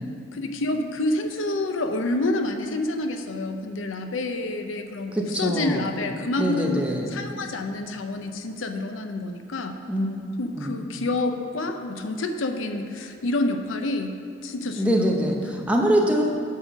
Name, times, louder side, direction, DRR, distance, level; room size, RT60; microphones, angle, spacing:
voice 1, 0.3-6.8 7.1-9.8 10.4-14.2 14.4-15.3, left 2 dB, 85° left, 6 dB, 0.6 m, -28 dB
voice 2, 5.1-5.8 6.4-7.1 9.9-10.1 10.6-10.7 14.8-16.2, equal, 5° right, -1 dB, 0.8 m, -23 dB
8.6 x 5.6 x 6.2 m, 2.3 s
head